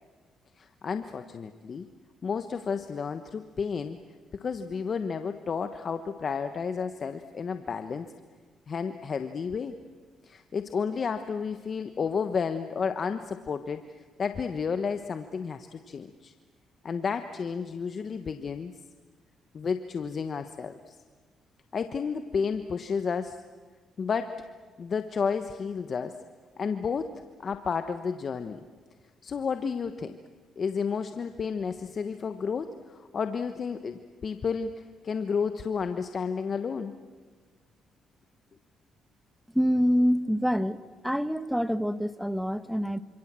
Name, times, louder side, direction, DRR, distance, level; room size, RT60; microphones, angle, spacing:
voice 1, 0.6-1.9 2.2-4.0 4.3-8.1 8.7-9.8 10.2-16.3 16.8-18.7 19.5-21.0 21.7-23.4 24.0-24.4 24.8-26.2 26.6-28.6 29.2-30.2 30.6-34.7 35.0-36.9, left 6 dB, 45° left, 8 dB, 1.2 m, -31 dB
voice 2, 39.5-40.8 41.0-43.0, equal, ahead, 13 dB, 1.2 m, -26 dB
27.5 x 26.5 x 7.6 m, 1.5 s
cardioid pair, 90°, 0 cm